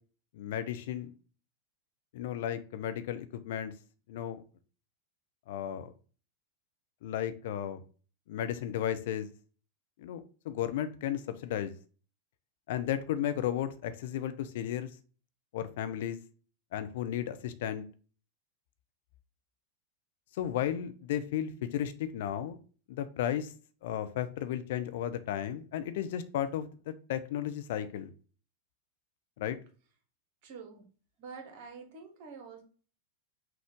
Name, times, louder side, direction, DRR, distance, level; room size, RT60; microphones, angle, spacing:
voice 1, 0.3-1.1 2.1-3.7 4.1-4.4 5.5-5.9 7.0-7.8 8.3-9.3 10.0-11.7 12.7-14.9 15.5-16.2 16.7-17.9 20.4-22.6 22.9-23.5 23.8-28.1 29.4-29.6, left 10 dB, 55° left, 11 dB, 0.5 m, -34 dB
voice 2, 30.4-30.8 31.2-32.6, right 5 dB, 45° right, 4 dB, 1.3 m, -47 dB
5.8 x 2.5 x 3.6 m, 0.37 s
figure-of-eight pair, 90°, 0 cm